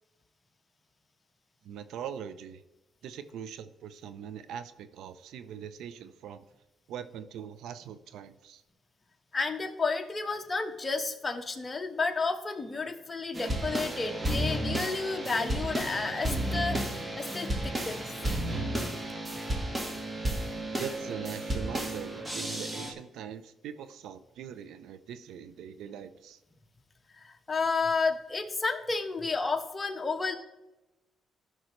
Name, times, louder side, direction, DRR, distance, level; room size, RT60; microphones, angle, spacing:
voice 1, 1.6-2.6 3.0-6.4 6.9-8.6 20.8-26.4, right 8 dB, 80° right, 12 dB, 0.6 m, -42 dB
voice 2, 9.3-18.1 27.2-30.3, left 4 dB, 25° left, 5 dB, 1.2 m, -31 dB
sound 1, 13.3-22.9, right 1 dB, 20° right, 1.6 m, -32 dB
14.5 x 6.1 x 3.2 m, 1.0 s
cardioid pair, 90°, 0 cm